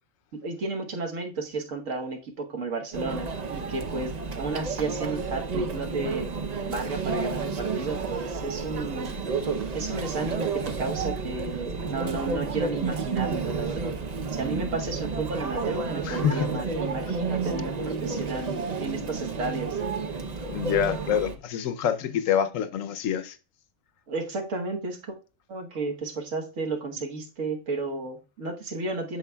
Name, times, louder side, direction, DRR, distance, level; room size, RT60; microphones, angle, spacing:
voice 1, 0.3-6.3 6.7-9.2 9.7-13.9 14.3-19.8 24.1-25.2 25.5-29.2, right 3 dB, 80° right, 1.5 m, -33 dB
Conversation / Chatter / Crowd, 2.9-21.3, right 4 dB, 45° right, 0.6 m, -31 dB
voice 2, 16.0-16.5 20.5-23.4, left 9 dB, 90° left, 1.1 m, -26 dB
13.5 x 4.9 x 2.2 m
omnidirectional pair, 1.3 m